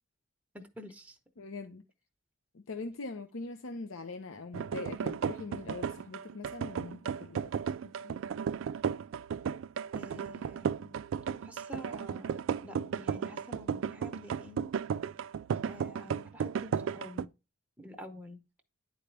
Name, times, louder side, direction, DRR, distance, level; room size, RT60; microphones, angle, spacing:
voice 1, 0.5-1.2 9.9-10.9 11.4-14.7 15.7-17.3 17.8-18.4, equal, 5° right, 0.8 m, -48 dB
voice 2, 1.4-1.8 2.5-8.2, left 3 dB, 85° left, 0.6 m, -42 dB
sound 1, 4.5-17.3, right 7 dB, 75° right, 0.3 m, -34 dB
10.0 x 4.0 x 3.3 m
head